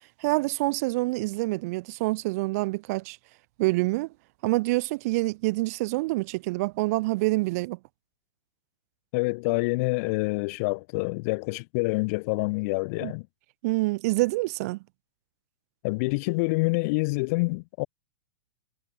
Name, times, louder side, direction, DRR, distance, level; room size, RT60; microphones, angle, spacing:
voice 1, 0.2-3.2 3.6-4.1 4.4-7.8 13.0-13.1 13.6-14.8, right 22 dB, 45° right, 2.5 m, -26 dB
voice 2, 9.1-13.3 15.8-17.9, left 27 dB, 40° left, 3.3 m, -27 dB
figure-of-eight pair, 105°, 12 cm